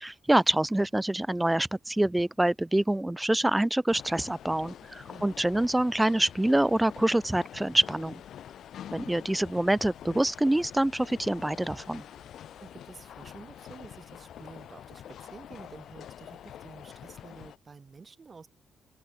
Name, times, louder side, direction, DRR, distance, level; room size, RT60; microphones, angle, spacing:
voice 1, 0.0-8.2 8.9-12.0, right 1 dB, 10° right, 0.4 m, -26 dB
sound 1, 3.9-17.6, left 10 dB, 75° left, 0.7 m, -46 dB
voice 2, 12.6-18.5, right 4 dB, 35° right, 6.6 m, -50 dB
open air
cardioid pair, 105°, 0 cm